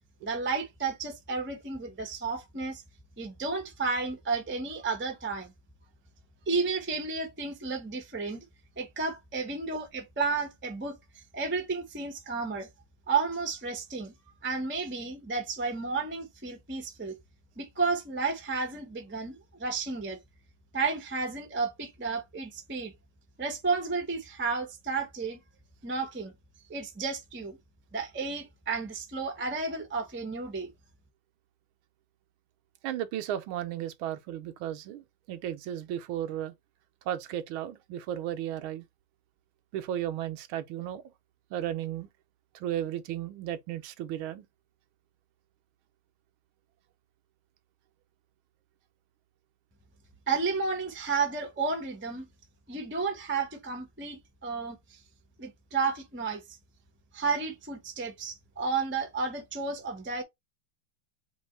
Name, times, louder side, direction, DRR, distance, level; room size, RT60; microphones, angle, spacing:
voice 1, 0.2-2.8 3.2-5.5 6.5-8.4 8.8-11.0 11.3-12.7 13.1-14.1 14.4-17.2 17.6-20.2 20.7-22.9 23.4-25.4 25.8-26.3 26.7-27.6 27.9-30.7 50.3-52.2 52.7-54.8 55.4-56.4 57.1-60.2, right 4 dB, 20° right, 0.3 m, -32 dB
voice 2, 32.8-35.0 35.3-36.5 37.1-38.8 39.7-41.0 41.5-42.1 42.6-44.5, right 11 dB, 80° right, 1.4 m, -34 dB
5.3 x 2.9 x 3.2 m
omnidirectional pair, 2.3 m